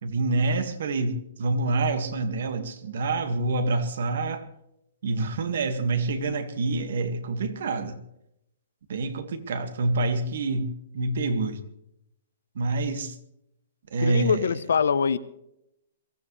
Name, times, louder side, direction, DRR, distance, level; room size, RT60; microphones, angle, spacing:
voice 1, 0.0-4.5 5.0-8.0 8.9-11.6 12.6-13.2 13.9-14.5, right 3 dB, 65° right, 1.9 m, -27 dB
voice 2, 14.0-15.2, left 6 dB, 85° left, 0.9 m, -23 dB
22.5 x 15.0 x 3.3 m
hypercardioid pair, 165°, 0 cm